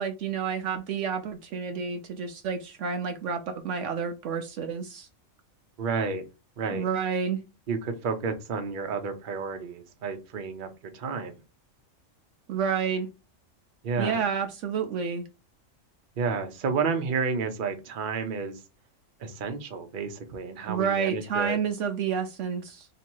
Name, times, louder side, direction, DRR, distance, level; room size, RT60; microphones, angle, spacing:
voice 1, 0.0-5.1 6.7-7.4 12.5-13.1 14.0-15.2 20.7-22.9, right 6 dB, 70° right, 6 dB, 0.9 m, -29 dB
voice 2, 5.8-6.2 6.6-6.9 7.7-11.4 13.8-14.3 16.2-18.6 19.2-21.6, right 5 dB, 45° right, 6 dB, 0.8 m, -31 dB
3.0 x 2.8 x 4.4 m, 0.27 s
omnidirectional pair, 1.4 m